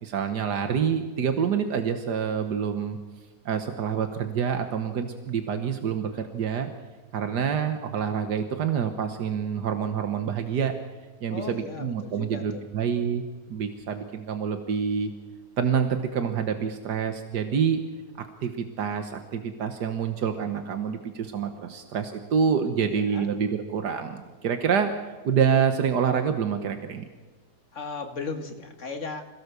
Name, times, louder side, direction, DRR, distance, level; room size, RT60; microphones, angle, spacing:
voice 1, 0.0-3.0 3.4-6.7 7.1-10.7 11.2-15.1 15.6-17.8 18.2-24.9 25.2-27.0, right 7 dB, 85° right, 7 dB, 1.8 m, -27 dB
voice 2, 11.3-12.6 22.8-23.3 27.7-29.2, left 4 dB, 50° left, 6 dB, 2.1 m, -36 dB
26.5 x 17.0 x 6.9 m, 1.3 s
omnidirectional pair, 1.7 m